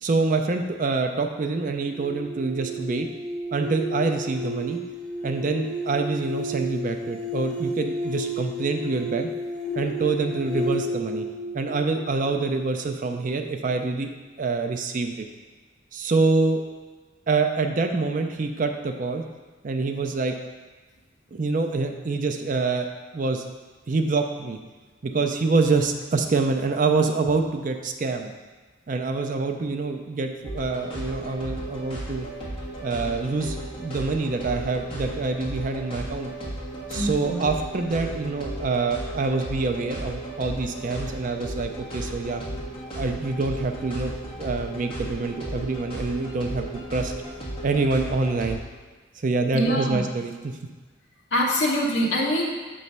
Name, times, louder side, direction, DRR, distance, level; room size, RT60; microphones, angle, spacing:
voice 1, 0.0-3.1 3.5-4.8 5.2-9.3 9.7-11.3 11.5-15.1 15.9-16.6 17.3-19.2 19.6-20.3 21.3-22.9 23.1-23.5 23.9-24.6 25.0-28.3 28.9-32.3 32.8-36.3 36.9-42.4 43.0-44.1 44.4-47.1 47.6-48.6 49.2-50.6, right 3 dB, 40° right, 5 dB, 0.4 m, -26 dB
sound 1, 1.9-13.0, equal, 5° left, 0.5 m, -32 dB
sound 2, 30.4-48.6, right 1 dB, 30° left, 1.5 m, -35 dB
voice 2, 36.9-37.4 49.5-50.0 51.3-52.4, equal, 65° left, -2 dB, 1.1 m, -24 dB
6.8 x 3.1 x 5.4 m, 1.3 s
head